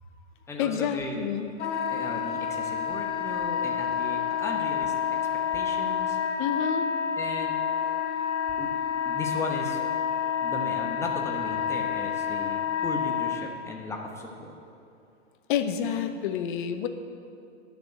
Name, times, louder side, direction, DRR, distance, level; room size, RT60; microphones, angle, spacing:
voice 1, 0.0-1.2 1.9-5.2 5.5-6.2 7.2-7.6 8.6-8.7 9.0-9.8 10.4-14.5, left 3 dB, 10° left, 1 dB, 1.1 m, -36 dB
voice 2, 0.6-1.5 6.4-6.9 15.5-16.9, left 8 dB, 45° left, 8 dB, 0.9 m, -28 dB
Wind instrument woodwind instrument, 1.6-13.4, left 8 dB, 80° left, 1.6 m, -29 dB
11.0 x 6.9 x 8.0 m, 2.6 s
hypercardioid pair, 140°, 35 cm